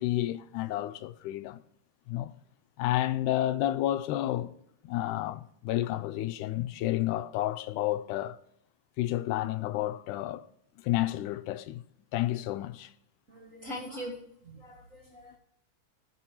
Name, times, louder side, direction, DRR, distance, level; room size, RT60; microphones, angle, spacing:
voice 1, 0.0-1.6 2.1-2.3 2.8-4.5 4.8-8.4 9.0-10.4 10.8-11.8 12.1-12.9, left 14 dB, 85° left, 2.0 m, -30 dB
voice 2, 13.3-14.2 14.4-15.4, equal, 30° right, 1.8 m, -41 dB
19.0 x 7.7 x 3.0 m
omnidirectional pair, 3.6 m